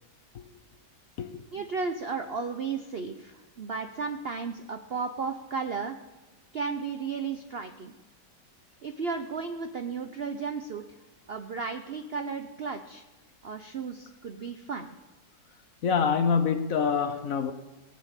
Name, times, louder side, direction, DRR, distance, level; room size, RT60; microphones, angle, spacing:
voice 1, 1.5-6.0 6.5-7.9 8.8-10.8 11.3-13.0 13.4-14.9, right 5 dB, 60° right, 0.6 m, -34 dB
voice 2, 15.8-17.5, left 6 dB, 55° left, 1.1 m, -26 dB
18.5 x 6.8 x 8.2 m
omnidirectional pair, 1.9 m